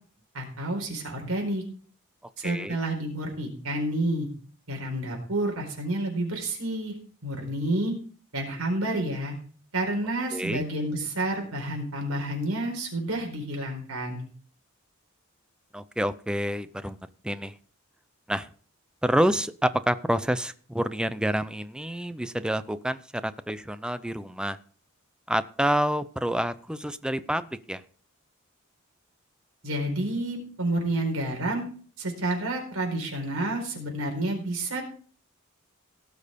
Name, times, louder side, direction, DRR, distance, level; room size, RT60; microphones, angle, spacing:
voice 1, 0.3-1.6 2.4-4.3 4.7-6.9 7.2-7.9 8.3-9.3 9.7-14.2 29.6-31.6 32.0-34.8, right 1 dB, 80° right, 1 dB, 4.5 m, -29 dB
voice 2, 2.4-2.8 10.3-10.6 15.7-17.0 17.2-17.5 18.3-18.5 19.0-24.6 25.3-27.8, equal, 5° right, 13 dB, 0.6 m, -28 dB
18.0 x 6.5 x 5.2 m, 0.43 s
head